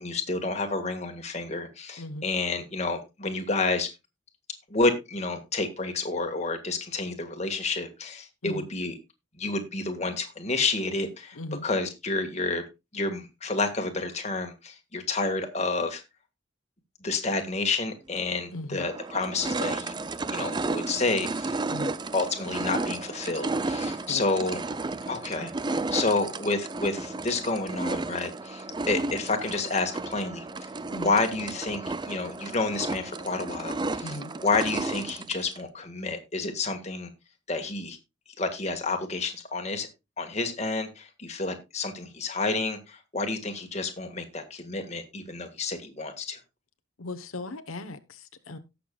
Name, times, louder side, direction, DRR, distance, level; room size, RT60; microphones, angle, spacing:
voice 1, 0.0-3.9 4.7-8.9 9.4-11.4 11.6-12.6 12.9-16.0 17.0-19.9 20.3-21.5 22.1-24.6 25.0-30.7 31.0-34.1 34.4-37.1 37.5-38.0 38.4-39.9 40.2-46.4, left 3 dB, 30° left, 1.7 m, -29 dB
voice 2, 2.0-2.3 8.4-8.7 11.3-11.7 18.5-18.9 21.7-21.9 24.0-24.2 30.9-31.1 34.0-34.3 47.0-48.6, left 2 dB, 90° left, 1.0 m, -37 dB
sound 1, 18.2-18.3 18.8-35.6, right 3 dB, 20° right, 0.4 m, -33 dB
17.5 x 6.8 x 2.3 m
head